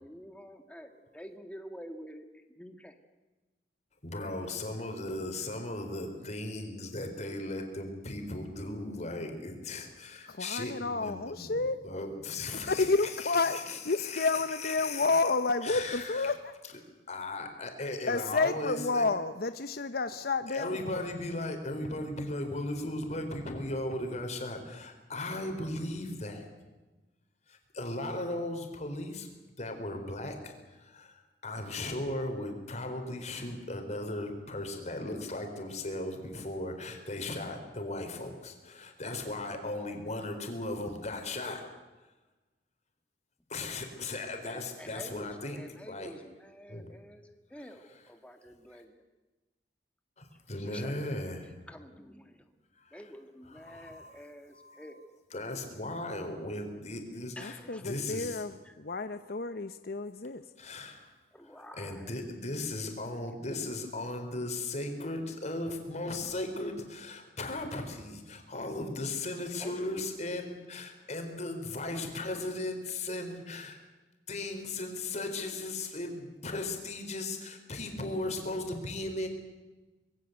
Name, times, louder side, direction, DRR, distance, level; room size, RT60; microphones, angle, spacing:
voice 1, 0.0-3.0 44.4-49.0 50.6-52.5 52.9-55.0 56.5-56.6 57.4-57.9 58.6-58.7 61.3-62.3 69.6-70.1, equal, 5° left, 6 dB, 1.9 m, -49 dB
voice 2, 4.0-12.9 13.2-15.2 15.6-16.3 17.1-19.1 20.5-26.5 27.5-29.3 29.6-41.6 43.5-45.6 45.9-46.1 46.7-46.9 50.2-51.5 52.8-53.0 53.6-54.2 54.6-54.8 55.3-57.5 57.8-58.4 60.6-61.1 61.8-73.8 74.3-79.3, left 2 dB, 40° left, 5 dB, 4.3 m, -37 dB
voice 3, 10.3-11.8 12.5-16.5 18.1-21.1 57.4-60.4, left 3 dB, 60° left, 11 dB, 0.8 m, -30 dB
25.5 x 21.0 x 8.1 m, 1.2 s
head